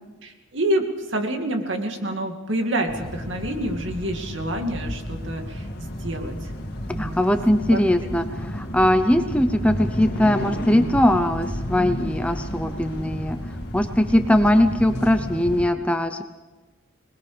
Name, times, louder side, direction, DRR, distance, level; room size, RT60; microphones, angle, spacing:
voice 1, 0.2-0.8 1.1-6.5 6.8-7.2 7.7-7.8, right 1 dB, 65° right, 4 dB, 2.4 m, -27 dB
sound 1, 2.9-15.7, equal, 50° left, 2.4 m, -32 dB
voice 2, 7.0-13.4 13.7-16.2, left 1 dB, 5° left, 7 dB, 0.7 m, -20 dB
25.0 x 20.5 x 5.1 m, 1.2 s
head